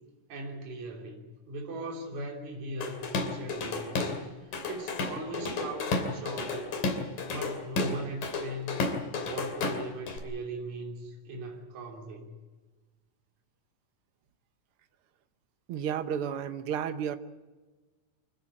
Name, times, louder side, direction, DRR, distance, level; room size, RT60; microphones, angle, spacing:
voice 1, 0.3-4.1 4.4-6.7 7.3-8.8 9.2-12.3, right 2 dB, 60° right, 1 dB, 4.6 m, -39 dB
Drum kit / Drum, 2.8-4.2 4.5-10.2, left 3 dB, 85° left, 4.4 m, -32 dB
voice 2, 15.7-17.2, right 8 dB, 80° right, 10 dB, 1.2 m, -32 dB
25.5 x 16.0 x 8.8 m, 1.3 s
omnidirectional pair, 3.8 m